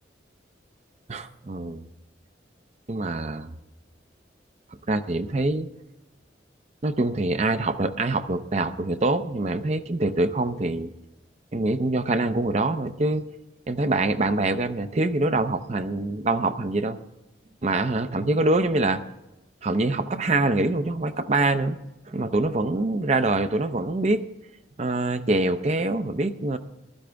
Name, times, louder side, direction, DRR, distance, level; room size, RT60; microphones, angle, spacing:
voice 1, 1.1-1.9 2.9-3.5 4.9-5.7 6.8-10.9 11.5-13.2 13.7-17.0 17.6-19.0 19.6-21.8 22.1-24.2 24.8-26.6, right 2 dB, 40° right, 9 dB, 0.6 m, -24 dB
15.5 x 12.0 x 3.4 m, 0.96 s
head